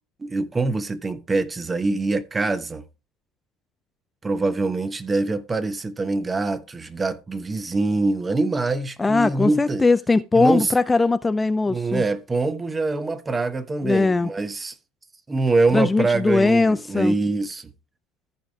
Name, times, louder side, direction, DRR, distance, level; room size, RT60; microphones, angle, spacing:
voice 1, 0.2-2.8 4.2-9.9 10.3-10.7 11.7-14.7 15.3-17.7, right 3 dB, 20° right, 1.1 m, -24 dB
voice 2, 9.0-12.0 13.8-14.3 15.7-17.1, left 3 dB, 15° left, 0.4 m, -20 dB
14.5 x 5.0 x 3.6 m
hypercardioid pair, 80°, 0 cm